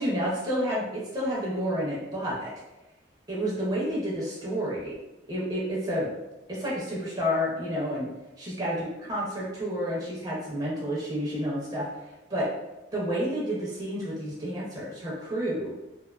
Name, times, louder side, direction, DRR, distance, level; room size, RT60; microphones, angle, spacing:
voice 1, 0.0-2.5 3.3-4.9 5.3-6.1 6.5-8.1 8.4-11.9 12.3-12.5 12.9-15.7, equal, 20° right, -6 dB, 0.5 m, -30 dB
2.4 x 2.2 x 2.3 m, 0.96 s
head